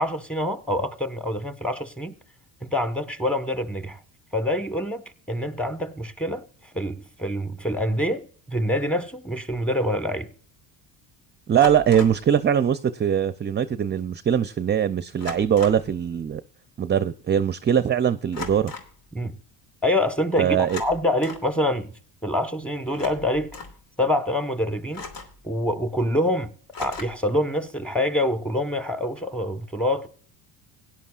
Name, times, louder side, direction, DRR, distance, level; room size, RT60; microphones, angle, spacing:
voice 1, 0.0-2.1 2.6-4.0 4.3-6.4 6.7-10.3 19.1-19.3 19.8-21.9 22.2-23.6 24.0-25.0 25.4-26.5 26.8-30.1, left 1 dB, 5° left, 1.3 m, -26 dB
sound 1, 9.5-9.7 11.6-12.3 13.6-13.7 14.0-14.2 15.2-15.9 18.3-19.0 20.6-21.5 22.9-23.8 24.9-25.5 26.7-27.3, left 4 dB, 80° left, 2.9 m, -37 dB
voice 2, 11.5-16.4 16.8-18.7 20.4-20.8, right 8 dB, 25° right, 0.5 m, -21 dB
17.0 x 10.5 x 2.4 m
supercardioid pair, 95°, 44 cm